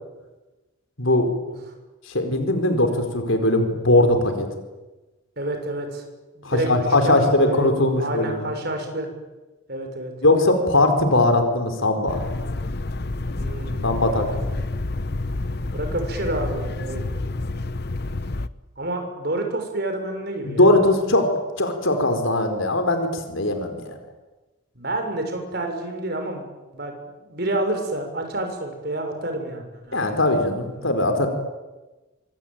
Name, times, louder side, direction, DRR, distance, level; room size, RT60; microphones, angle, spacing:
voice 1, 1.0-1.3 2.1-4.5 6.4-8.5 10.2-12.2 13.8-14.4 20.4-21.3 21.6-23.9 29.9-31.3, left 2 dB, 75° left, 6 dB, 4.7 m, -20 dB
voice 2, 5.4-6.0 6.3-7.7 8.0-9.1 9.7-10.1 13.4-14.2 15.7-17.1 18.8-20.7 24.8-26.4 26.7-26.9 27.3-30.4 30.8-31.3, right 1 dB, 50° right, 4 dB, 6.5 m, -29 dB
sound 1, 12.1-18.5, left 2 dB, 50° left, 0.9 m, -29 dB
26.5 x 25.0 x 9.2 m, 1.1 s
head